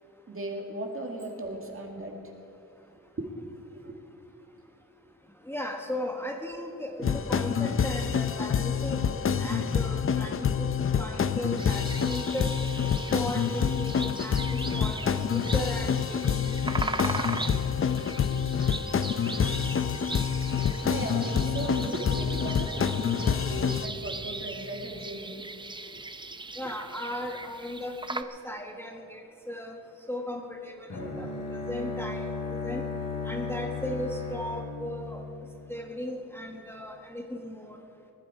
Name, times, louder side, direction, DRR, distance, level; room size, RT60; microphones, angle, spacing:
voice 1, 0.3-2.2 2.9-3.3 3.8-4.0 20.8-25.5, right 2 dB, 45° right, 1 dB, 2.1 m, -37 dB
voice 2, 5.4-10.7 11.0-12.5 12.8-17.3 17.8-18.1 26.6-29.8 30.1-32.3 32.6-32.8 33.2-35.2 35.7-37.8, left 1 dB, 5° left, 1 dB, 1.1 m, -37 dB
sound 1, 7.0-23.9, left 7 dB, 40° left, 0.5 m, -27 dB
sound 2, 11.6-28.2, right 3 dB, 15° right, 0.5 m, -39 dB
Bowed string instrument, 30.9-35.8, left 4 dB, 70° left, 3.0 m, -35 dB
20.0 x 12.0 x 4.8 m, 2.9 s
wide cardioid pair, 125°, 32 cm